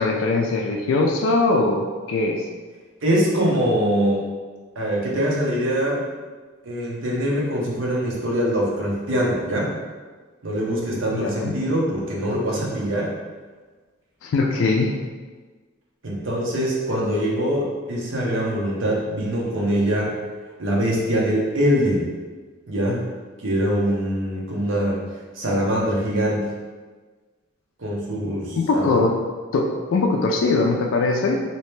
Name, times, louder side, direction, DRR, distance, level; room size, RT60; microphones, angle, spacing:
voice 1, 0.0-2.4 11.1-11.5 14.2-14.9 28.5-29.1 29.5-31.4, left 3 dB, 70° left, 1 dB, 0.3 m, -21 dB
voice 2, 3.0-4.3 4.8-6.1 6.6-9.7 10.4-13.1 16.0-20.1 20.6-22.2 22.7-23.0 23.4-25.0 25.3-26.5 27.8-29.1, equal, 65° right, -3 dB, 0.8 m, -23 dB
3.2 x 2.8 x 3.1 m, 1.4 s
head